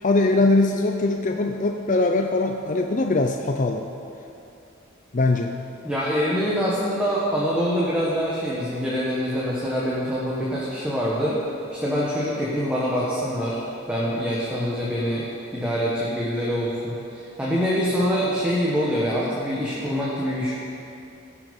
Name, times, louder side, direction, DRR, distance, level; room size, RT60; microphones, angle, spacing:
voice 1, 0.0-3.8 5.1-5.5, left 2 dB, 40° left, 3 dB, 0.6 m, -21 dB
voice 2, 5.8-11.4 11.7-13.6 13.9-20.5, equal, 5° right, -7 dB, 1.5 m, -25 dB
17.0 x 7.3 x 5.4 m, 2.7 s
head